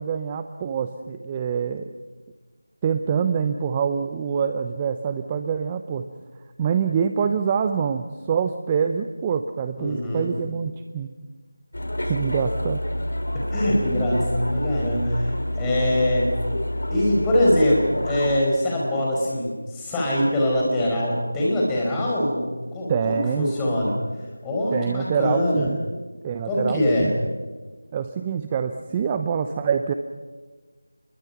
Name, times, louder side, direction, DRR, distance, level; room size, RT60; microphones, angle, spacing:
voice 1, 0.0-1.9 2.8-6.1 6.6-11.1 12.1-12.8 22.9-23.5 24.7-25.8 26.2-27.1 27.9-29.9, right 7 dB, 15° right, 8 dB, 0.7 m, -25 dB
voice 2, 9.8-10.3 13.3-16.3 16.9-24.0 24.4-25.7 26.5-27.1, left 1 dB, 10° left, -4 dB, 5.1 m, -23 dB
sound 1, 11.7-18.4, left 1 dB, 75° left, 3.6 m, -28 dB
29.0 x 22.5 x 5.9 m, 1.4 s
figure-of-eight pair, 170°, 0 cm